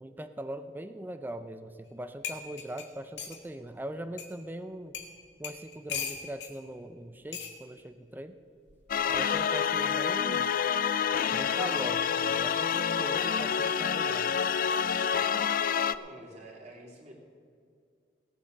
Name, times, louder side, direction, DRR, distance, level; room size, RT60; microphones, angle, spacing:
voice 1, 0.0-4.9 5.4-8.4 9.1-10.5 11.3-14.4, right 1 dB, 10° right, 9 dB, 0.5 m, -41 dB
sound 1, 1.9-2.0 2.2-3.4 4.2-4.3 4.9-5.1 5.4-6.5 7.3-7.5 8.7-8.9, left 7 dB, 80° left, 1.7 m, -38 dB
sound 2, 8.9-15.9, left 7 dB, 50° left, 0.4 m, -28 dB
voice 2, 15.9-17.1, right 1 dB, 40° right, -1 dB, 2.9 m, -48 dB
17.5 x 8.3 x 6.6 m, 2.3 s
head